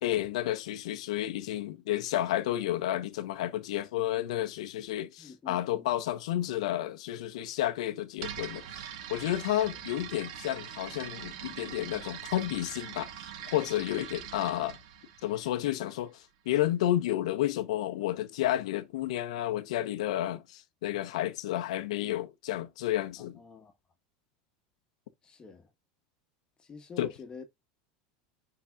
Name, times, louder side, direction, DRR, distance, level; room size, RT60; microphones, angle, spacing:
voice 1, 0.0-13.1 13.5-14.8 15.2-23.4 27.0-27.1, left 13 dB, 80° left, 1.0 m, -31 dB
voice 2, 5.2-5.9 9.7-9.8 23.3-23.7 25.2-25.7 26.6-27.4, left 5 dB, 25° left, 1.8 m, -47 dB
sound 1, 8.2-16.0, right 9 dB, 75° right, 1.5 m, -43 dB
10.0 x 4.0 x 2.4 m
supercardioid pair, 120°, 3 cm